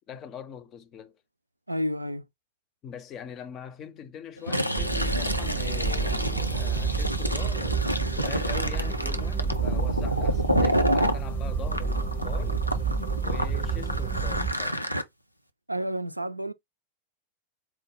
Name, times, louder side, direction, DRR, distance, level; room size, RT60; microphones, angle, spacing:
voice 1, 0.1-1.2 2.8-7.9 8.1-12.7 13.2-14.8, left 8 dB, 30° left, 0.6 m, -42 dB
voice 2, 1.7-2.2 15.7-16.5, equal, 85° right, 0.3 m, -30 dB
Fill (with liquid), 4.4-11.2 11.7-15.0, equal, 90° left, 0.5 m, -29 dB
sound 1, 4.8-14.5, right 5 dB, 35° right, 0.6 m, -29 dB
sound 2, 5.0-14.7, left 6 dB, 65° left, 0.8 m, -45 dB
4.4 x 2.1 x 3.3 m
figure-of-eight pair, 90°, 0 cm